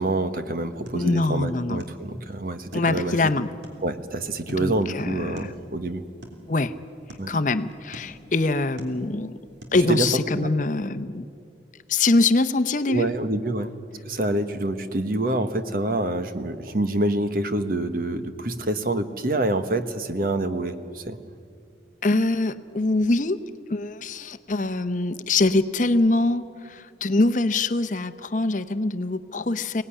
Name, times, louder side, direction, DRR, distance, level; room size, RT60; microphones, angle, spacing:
voice 1, 0.0-3.2 3.8-6.0 7.2-7.3 9.9-10.5 12.9-13.7 14.0-21.2, right 2 dB, 50° right, 9 dB, 1.2 m, -26 dB
sound 1, 0.7-9.9, equal, 75° right, 3.3 m, -48 dB
voice 2, 0.9-1.8 2.7-3.5 4.5-5.5 6.5-6.7 7.3-9.4 9.7-11.3 11.9-13.1 22.0-23.4 23.7-29.8, left 2 dB, 45° left, 11 dB, 0.7 m, -23 dB
24.5 x 18.5 x 10.0 m, 2.3 s
head